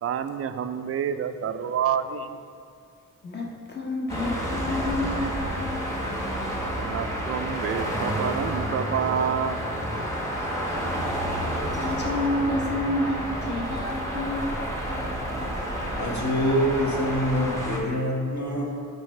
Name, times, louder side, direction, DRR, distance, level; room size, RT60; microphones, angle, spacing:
voice 1, 0.0-2.4 6.8-9.6, right 8 dB, 45° right, 9 dB, 0.4 m, -28 dB
voice 2, 3.2-5.8 10.4-10.5 10.7-10.8 11.5-14.5, left 1 dB, 30° left, -1 dB, 1.1 m, -29 dB
sound 1, 4.1-17.8, equal, 10° left, 1.3 m, -30 dB
voice 3, 16.0-18.7, equal, 55° left, -3 dB, 1.8 m, -25 dB
14.5 x 5.4 x 3.2 m, 2.4 s
wide cardioid pair, 145°, 33 cm